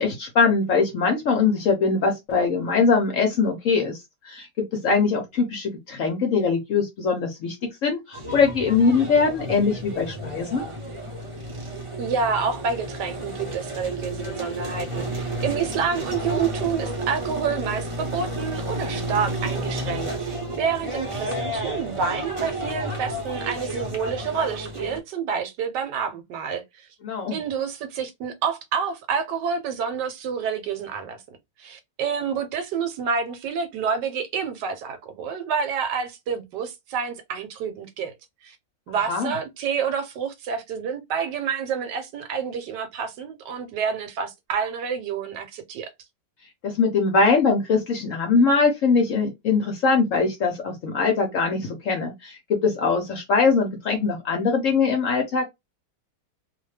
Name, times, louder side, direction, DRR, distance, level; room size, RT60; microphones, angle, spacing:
voice 1, 0.0-4.0 4.2-4.5 4.7-7.6 7.8-10.7 27.0-27.4 39.1-39.3 46.6-55.4, left 4 dB, 60° left, 0.9 m, -22 dB
sound 1, 8.1-25.0, right 1 dB, 40° right, 0.4 m, -31 dB
voice 2, 12.0-26.9 27.3-31.2 31.6-38.1 38.4-38.6 38.9-45.9, right 6 dB, 75° right, 1.2 m, -28 dB
2.8 x 2.2 x 3.1 m
omnidirectional pair, 1.9 m